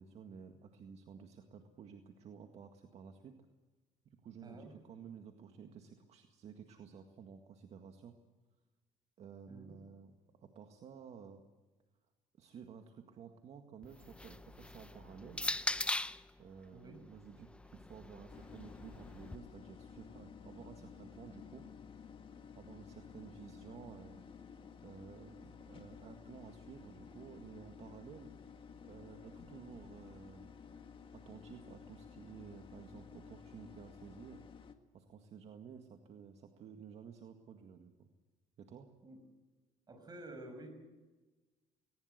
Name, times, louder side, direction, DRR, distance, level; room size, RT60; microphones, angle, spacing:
voice 1, 0.0-3.4 4.1-8.2 9.2-11.4 12.4-15.5 16.4-21.6 22.6-24.2 24.8-28.3 28.8-30.5 30.8-34.5 34.9-38.1 38.6-38.9, right 7 dB, 55° right, 5 dB, 1.9 m, -53 dB
voice 2, 4.4-4.7 9.5-9.8 16.7-17.0 29.4-29.6 39.0-39.2 39.9-40.7, right 1 dB, 30° right, 7 dB, 6.1 m, -51 dB
sound 1, 13.8-16.3 17.2-19.4, left 2 dB, 10° left, 0.7 m, -40 dB
sound 2, 18.3-34.7, left 6 dB, 40° left, 1.8 m, -54 dB
20.0 x 19.0 x 8.1 m, 1.2 s
cardioid pair, 105°, 13 cm